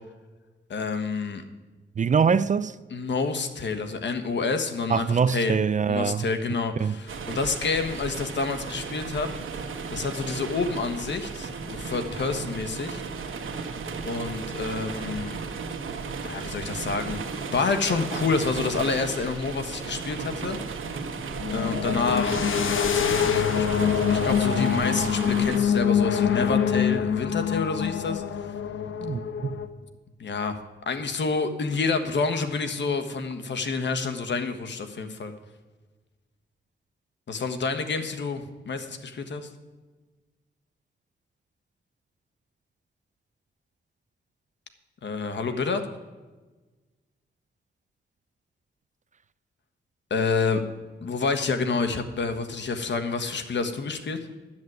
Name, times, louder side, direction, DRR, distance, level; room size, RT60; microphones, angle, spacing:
voice 1, 0.7-1.4 2.9-5.5 5.9-9.3 9.9-13.0 14.0-15.4 16.2-17.2 17.5-20.6 21.5-22.4 22.7-28.2 30.2-30.5 30.8-35.3 37.3-39.5 45.0-45.9 50.1-50.6 51.0-54.2, left 4 dB, 60° left, 1.4 m, -28 dB
voice 2, 2.0-2.8 4.9-6.3 6.8-6.9 29.0-29.6, right 6 dB, 40° right, 0.4 m, -24 dB
sound 1, 7.1-25.6, right 5 dB, 75° right, 1.4 m, -34 dB
sound 2, 19.2-19.4 21.4-29.7, left 8 dB, 80° left, 1.0 m, -25 dB
10.5 x 7.7 x 9.3 m
cardioid pair, 90°, 20 cm